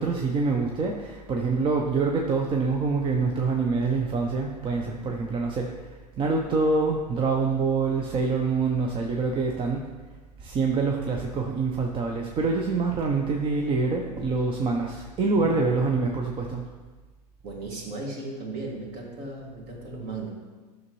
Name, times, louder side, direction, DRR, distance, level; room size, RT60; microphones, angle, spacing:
voice 1, 0.0-5.7 6.2-9.8 10.4-16.6, right 4 dB, 25° right, 1 dB, 0.6 m, -25 dB
voice 2, 15.3-16.0 17.4-20.3, right 2 dB, 45° right, -1 dB, 2.2 m, -36 dB
9.7 x 6.3 x 3.1 m, 1.3 s
hypercardioid pair, 105°, 21 cm